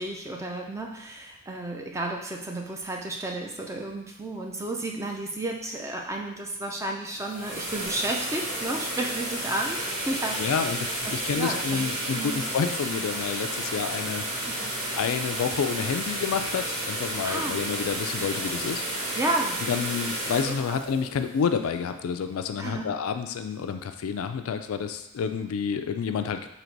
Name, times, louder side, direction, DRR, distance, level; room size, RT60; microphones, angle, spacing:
voice 1, 0.0-10.7 11.0-12.4 14.5-14.7 17.2-17.6 19.1-19.6 20.5-20.8 22.6-22.8, right 2 dB, 15° right, 1 dB, 0.4 m, -32 dB
sound 1, 7.0-22.0, right 1 dB, 40° right, 1.3 m, -32 dB
voice 2, 10.4-14.7 15.0-18.8 19.7-26.5, left 6 dB, 70° left, 8 dB, 0.3 m, -29 dB
3.9 x 2.9 x 4.5 m, 0.87 s
head